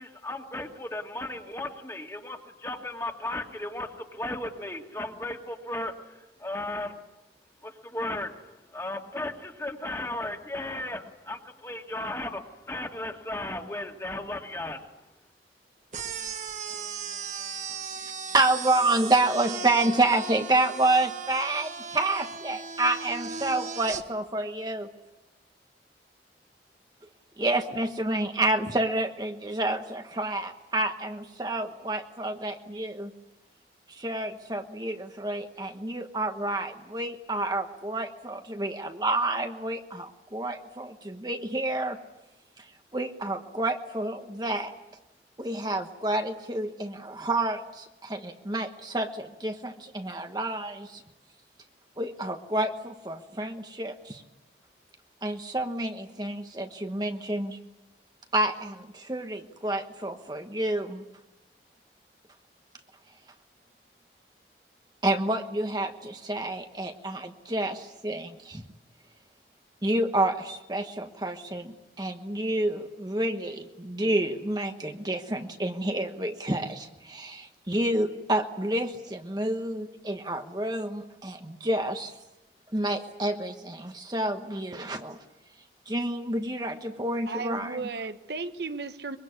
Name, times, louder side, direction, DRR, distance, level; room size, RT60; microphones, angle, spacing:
voice 1, 0.0-7.0 7.6-8.4 8.7-14.9, left 1 dB, 15° left, 3 dB, 2.1 m, -35 dB
sound 1, 15.9-24.0, right 6 dB, 45° right, 1.4 m, -37 dB
voice 2, 18.0-24.9 27.4-33.1 33.9-42.0 42.9-44.7 45.4-51.0 52.0-54.2 55.2-57.6 58.3-61.0 65.0-68.6 69.8-82.1 82.7-85.2 85.9-87.8, right 2 dB, 20° right, 5 dB, 1.2 m, -29 dB
voice 3, 87.3-89.2, right 4 dB, 70° right, 9 dB, 1.1 m, -35 dB
24.0 x 23.0 x 9.6 m, 0.99 s
head